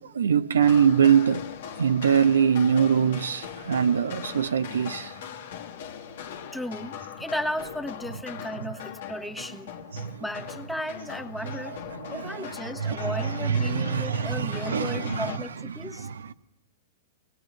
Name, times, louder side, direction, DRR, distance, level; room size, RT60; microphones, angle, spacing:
voice 1, 0.1-1.4 1.8-5.1 9.9-10.2 12.1-12.3 12.8-15.3 16.0-16.3, right 7 dB, 85° right, 1.0 m, -23 dB
sound 1, 0.6-15.4, left 9 dB, 65° left, 1.8 m, -40 dB
voice 2, 6.5-9.7 10.2-11.8 12.1-16.1, equal, 5° left, 1.5 m, -35 dB
24.0 x 20.5 x 7.8 m
hypercardioid pair, 115°, 0 cm